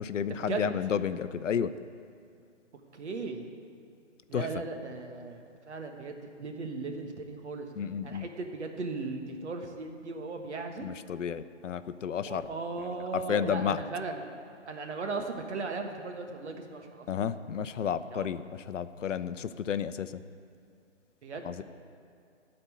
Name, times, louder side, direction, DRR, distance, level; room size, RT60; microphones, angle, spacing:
voice 1, 0.0-1.7 4.3-4.5 7.8-8.3 10.8-12.5 13.1-13.8 17.1-18.4 18.7-20.1 21.4-21.6, left 8 dB, 90° left, 13 dB, 0.6 m, -31 dB
voice 2, 2.9-3.5 4.3-7.7 8.0-10.9 12.2-14.4 14.7-17.1 17.8-18.3 21.2-21.6, right 3 dB, 65° right, 4 dB, 1.4 m, -37 dB
13.0 x 4.4 x 8.3 m, 2.4 s
hypercardioid pair, 155°, 36 cm